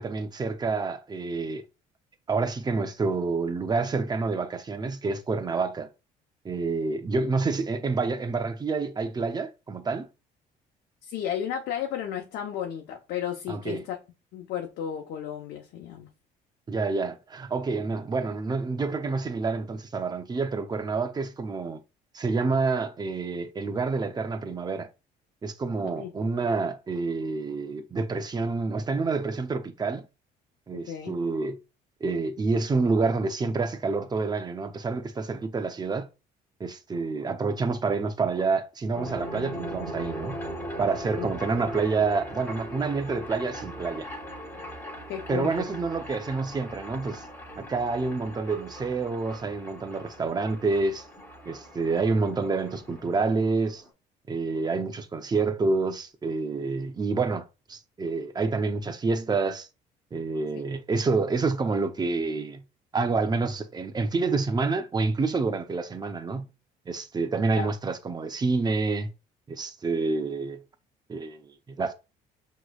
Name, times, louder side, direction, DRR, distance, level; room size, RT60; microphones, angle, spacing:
voice 1, 0.0-1.6 2.3-5.9 6.4-10.1 13.5-13.8 16.7-21.8 22.1-24.9 25.4-30.0 30.7-31.6 32.0-36.1 36.6-40.4 40.8-44.1 45.3-47.2 47.6-51.1 51.5-53.8 54.3-59.7 60.1-62.6 62.9-66.5 66.9-69.1 69.5-70.6 71.1-71.9, right 4 dB, 25° right, 0.7 m, -28 dB
voice 2, 11.0-14.0 14.3-16.1 26.0-26.1 30.7-31.1 41.2-41.3 45.1-45.7 67.5-67.7, left 9 dB, 75° left, 0.9 m, -33 dB
sound 1, 38.9-53.9, equal, 15° left, 1.9 m, -40 dB
6.0 x 3.1 x 2.3 m
cardioid pair, 110°, 17 cm